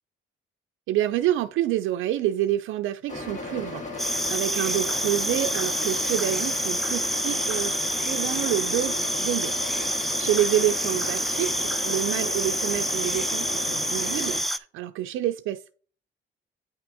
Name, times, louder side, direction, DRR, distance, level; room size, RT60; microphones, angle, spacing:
voice 1, 0.9-15.7, right 12 dB, 85° right, 0.5 m, -28 dB
sound 1, 3.1-14.4, left 2 dB, 35° left, 2.1 m, -36 dB
sound 2, 4.0-14.6, equal, ahead, 0.5 m, -27 dB
9.0 x 3.4 x 4.8 m
cardioid pair, 90°, 20 cm